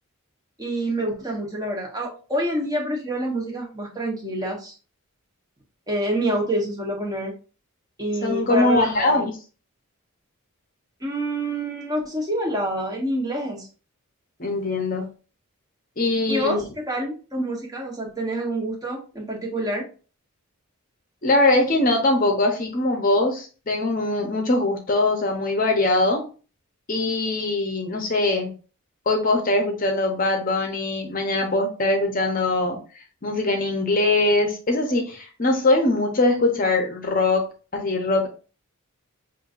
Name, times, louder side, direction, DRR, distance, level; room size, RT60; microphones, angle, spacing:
voice 1, 0.6-4.7 5.9-7.3 8.0-9.2 11.0-13.7 16.3-19.9, right 1 dB, 15° right, -1 dB, 1.0 m, -27 dB
voice 2, 8.2-9.3 14.4-15.1 16.0-16.6 21.2-26.2 26.9-28.5 29.1-32.8 33.2-37.4 37.7-38.3, left 2 dB, 40° left, 3 dB, 0.7 m, -22 dB
5.5 x 2.6 x 2.4 m, 0.36 s
head